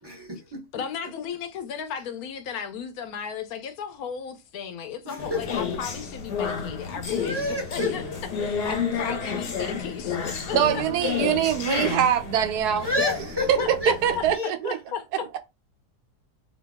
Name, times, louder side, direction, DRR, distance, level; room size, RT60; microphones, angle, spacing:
voice 1, 0.0-0.6 5.0-5.5 7.1-8.2 10.5-11.1 12.7-13.9 14.3-14.8, left 2 dB, 20° right, 0.7 m, -31 dB
voice 2, 0.7-8.0 8.4-10.8 13.0-13.2 13.6-14.2 14.6-15.3, left 7 dB, 75° left, 1.0 m, -35 dB
sound 1, 5.2-14.3, left 6 dB, 90° left, 1.5 m, -31 dB
voice 3, 10.5-12.9 13.5-14.6, right 9 dB, 80° right, 1.1 m, -23 dB
3.0 x 2.8 x 3.4 m
omnidirectional pair, 1.7 m